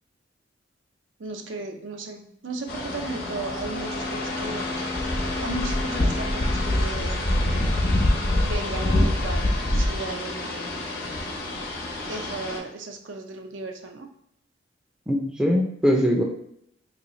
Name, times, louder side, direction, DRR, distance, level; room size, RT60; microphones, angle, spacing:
voice 1, 1.2-4.8 5.4-7.3 8.4-10.9 12.1-14.1, right 2 dB, 80° right, 4 dB, 0.5 m, -35 dB
Bowed string instrument, 2.5-7.9, left 2 dB, 80° left, 1.0 m, -37 dB
sound 1, 2.7-12.6, left 1 dB, 55° left, 0.8 m, -26 dB
voice 2, 15.1-16.2, equal, 5° right, -1 dB, 0.4 m, -21 dB
3.1 x 2.7 x 4.0 m, 0.72 s
head